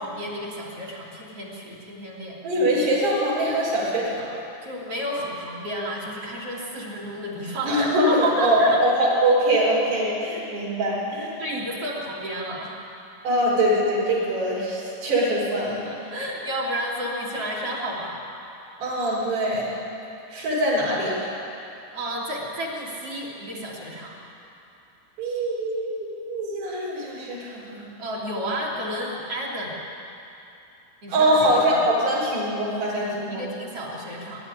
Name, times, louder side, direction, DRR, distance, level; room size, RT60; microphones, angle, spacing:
voice 1, 0.0-2.4 4.6-8.8 11.2-12.8 15.8-18.2 21.8-24.2 28.0-29.8 31.0-31.8 32.9-34.4, equal, 35° right, -3 dB, 3.0 m, -31 dB
voice 2, 2.4-4.4 7.7-11.4 13.2-15.9 18.8-19.8 20.3-21.3 25.2-27.8 31.1-33.4, right 1 dB, 55° right, -6 dB, 6.4 m, -23 dB
22.0 x 12.0 x 9.9 m, 2.8 s
omnidirectional pair, 5.9 m